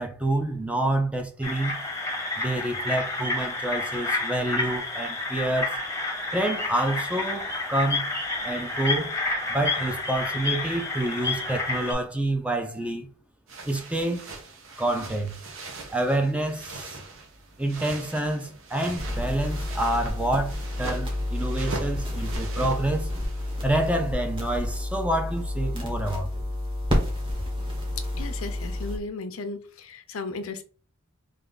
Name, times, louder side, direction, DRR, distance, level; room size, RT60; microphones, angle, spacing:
voice 1, 0.0-1.8 2.4-5.8 6.3-8.2 8.4-9.2 9.5-13.1 13.6-14.2 14.8-15.3 15.9-17.0 17.6-23.1 23.6-26.3, right 1 dB, 5° right, 0.5 m, -28 dB
sound 1, 1.4-11.9, left 2 dB, 15° left, 0.8 m, -30 dB
sound 2, 13.5-23.7, right 3 dB, 65° right, 0.8 m, -40 dB
sound 3, 19.0-29.0, left 1 dB, 25° right, 1.2 m, -30 dB
voice 2, 28.2-30.6, left 3 dB, 75° left, 0.6 m, -35 dB
3.4 x 2.6 x 3.8 m
head